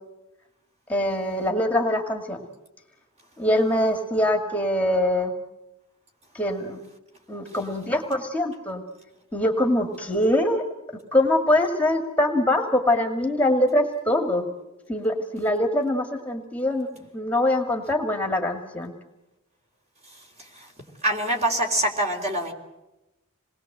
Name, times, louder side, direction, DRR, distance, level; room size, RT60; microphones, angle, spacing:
voice 1, 0.9-2.4 3.4-5.3 6.3-6.8 7.3-8.8 9.3-10.6 11.1-14.5 14.9-16.9 17.1-18.9, left 1 dB, 5° left, 4 dB, 1.8 m, -23 dB
voice 2, 21.0-22.5, right 1 dB, 30° right, 3 dB, 3.9 m, -24 dB
27.5 x 20.5 x 7.8 m, 0.99 s
head